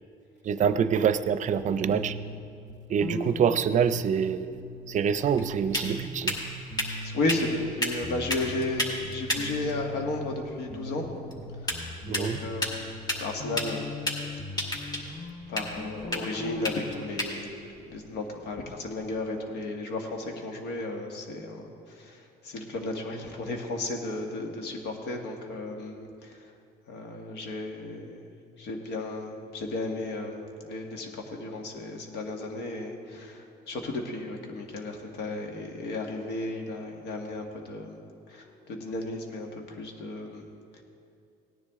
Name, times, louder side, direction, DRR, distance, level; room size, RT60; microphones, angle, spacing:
voice 1, 0.4-2.2 2.9-4.5 4.9-6.4 12.1-12.4, right 7 dB, 45° right, 13 dB, 0.5 m, -25 dB
sound 1, 1.8-5.1 5.3-7.7 8.0-10.4 10.7-17.0, left 1 dB, 50° left, 1.5 m, -40 dB
sound 2, 4.4-19.2, left 1 dB, 25° left, 2.1 m, -35 dB
voice 2, 7.0-11.1 12.1-13.9 15.5-17.5 17.9-26.4 26.9-28.3 28.6-38.0 38.3-40.4 40.7-40.8, left 2 dB, 80° left, 2 dB, 1.7 m, -34 dB
17.5 x 10.0 x 3.7 m, 2.4 s
cardioid pair, 110°, 17 cm